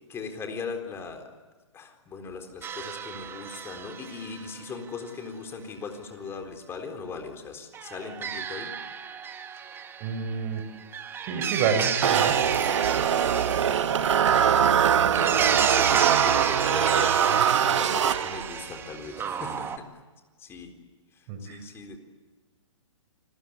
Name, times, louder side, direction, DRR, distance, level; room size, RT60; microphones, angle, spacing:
voice 1, 0.1-1.3 1.7-8.8 13.2-13.7 14.5-20.0 20.4-20.8 21.1-22.0, left 5 dB, 15° left, 4 dB, 4.1 m, -39 dB
sound 1, 2.6-4.6 7.7-19.8, right 8 dB, 15° right, 1.5 m, -32 dB
voice 2, 10.0-10.6 11.2-12.4 21.3-21.6, right 6 dB, 30° right, 8 dB, 5.8 m, -28 dB
sound 2, 12.0-18.6, right 8 dB, 65° right, 1.5 m, -22 dB
30.0 x 22.5 x 8.7 m, 1.3 s
hypercardioid pair, 145°, 16 cm